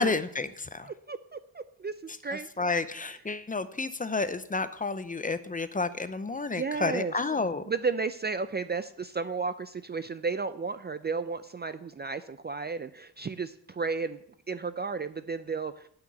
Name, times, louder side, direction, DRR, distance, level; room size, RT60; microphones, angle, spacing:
voice 1, 0.0-0.9 2.6-7.6, left 3 dB, 20° left, 12 dB, 0.6 m, -30 dB
voice 2, 0.8-2.5 6.5-7.2 7.7-14.2 14.5-15.9, right 4 dB, 25° right, 12 dB, 0.4 m, -33 dB
8.8 x 6.0 x 8.2 m, 0.68 s
cardioid pair, 115°, 39 cm